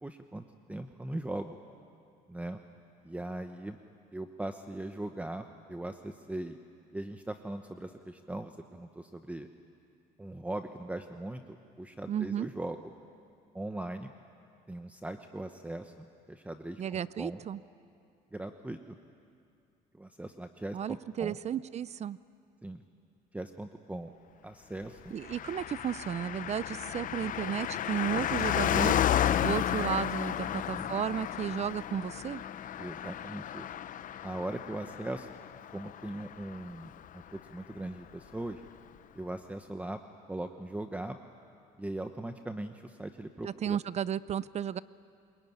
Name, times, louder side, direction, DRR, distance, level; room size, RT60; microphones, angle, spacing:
voice 1, 0.0-1.6 2.3-2.6 3.0-3.8 4.1-6.6 6.9-9.5 10.2-11.4 11.8-12.9 13.5-14.1 14.7-17.4 18.3-19.0 19.9-21.4 22.6-22.8 23.3-24.1 24.4-25.1 30.4-30.9 32.8-33.7 34.2-35.3 35.7-36.9 37.3-38.6 39.1-40.0 40.3-41.2 41.8-43.8, right 1 dB, 10° right, 7 dB, 1.0 m, -39 dB
voice 2, 12.1-12.5 16.8-17.6 20.7-22.2 25.1-29.0 29.4-32.4 43.4-44.8, right 9 dB, 40° right, 18 dB, 0.5 m, -33 dB
Car passing by, 25.2-37.1 37.3-37.4, left 10 dB, 50° left, 0.7 m, -32 dB
25.0 x 22.5 x 9.6 m, 2.4 s
cardioid pair, 110°, 17 cm